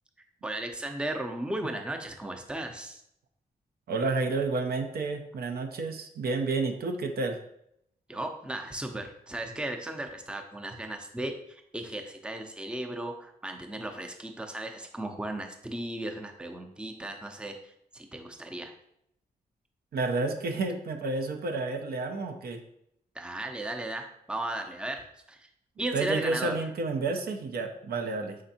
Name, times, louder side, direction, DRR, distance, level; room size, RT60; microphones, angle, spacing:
voice 1, 0.4-3.0 8.1-18.7 23.1-25.5 25.8-26.6, right 1 dB, 5° right, 5 dB, 0.5 m, -36 dB
voice 2, 3.9-7.4 19.9-22.6 25.9-28.4, right 3 dB, 70° right, 5 dB, 0.6 m, -30 dB
5.0 x 3.4 x 2.8 m, 0.75 s
cardioid pair, 75°, 16 cm